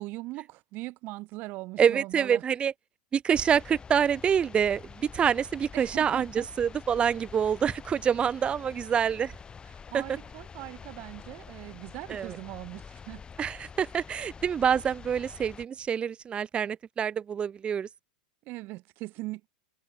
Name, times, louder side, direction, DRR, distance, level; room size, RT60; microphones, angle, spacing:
voice 1, 0.0-2.4 5.7-6.5 9.9-13.2 18.5-19.5, right 21 dB, 50° right, 7.3 m, -40 dB
voice 2, 1.8-2.7 3.1-9.3 9.9-10.0 12.1-12.4 13.4-17.9, right 8 dB, 25° right, 0.7 m, -26 dB
sound 1, 3.3-15.6, left 6 dB, 20° left, 3.9 m, -47 dB
hypercardioid pair, 100°, 4 cm